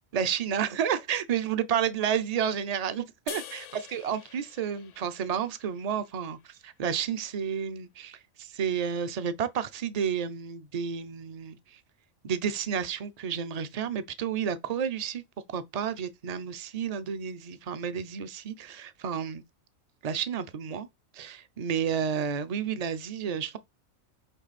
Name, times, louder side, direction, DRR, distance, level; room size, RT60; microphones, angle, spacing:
voice 1, 0.1-3.7 3.9-11.8 12.2-15.2 15.5-19.4 20.0-20.9 21.1-23.6, right 8 dB, 55° right, 0.4 m, -31 dB
sound 1, 3.3-6.6, left 11 dB, 70° left, 0.9 m, -46 dB
8.2 x 3.2 x 4.1 m
omnidirectional pair, 1.4 m